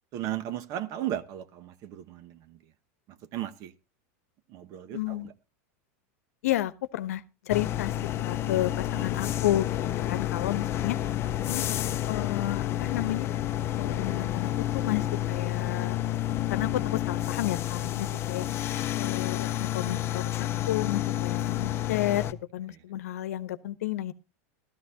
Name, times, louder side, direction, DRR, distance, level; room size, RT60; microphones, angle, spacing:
voice 1, 0.1-2.7 3.1-3.7 4.5-5.3 8.1-8.5 8.9-9.0 18.2-18.3 22.7-22.8, right 12 dB, 45° right, 1.0 m, -36 dB
voice 2, 4.9-5.3 6.4-7.9 8.2-11.0 11.5-13.3 13.8-16.0 16.5-18.5 19.0-22.2 22.5-24.1, left 14 dB, 85° left, 0.9 m, -31 dB
sound 1, 7.5-22.3, left 12 dB, 30° left, 0.6 m, -30 dB
15.5 x 13.0 x 2.8 m
supercardioid pair, 135°, 8 cm